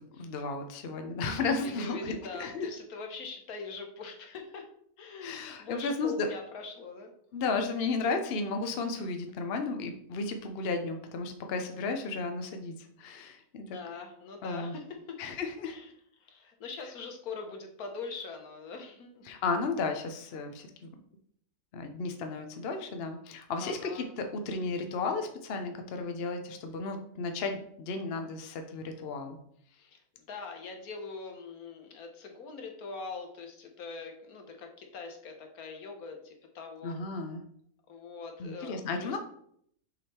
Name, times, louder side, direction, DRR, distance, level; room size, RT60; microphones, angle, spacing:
voice 1, 0.0-2.7 5.2-6.3 7.3-13.8 14.4-14.7 15.2-15.8 19.3-20.9 21.7-29.4 36.8-37.4 38.4-39.2, left 4 dB, 55° left, 5 dB, 0.7 m, -34 dB
voice 2, 1.6-4.7 5.0-7.1 13.7-15.2 15.6-15.9 16.2-19.2 23.6-24.1 29.7-30.0 30.3-37.0 37.9-39.2, left 4 dB, 70° left, 3 dB, 1.4 m, -42 dB
6.2 x 3.6 x 4.2 m, 0.66 s
omnidirectional pair, 1.7 m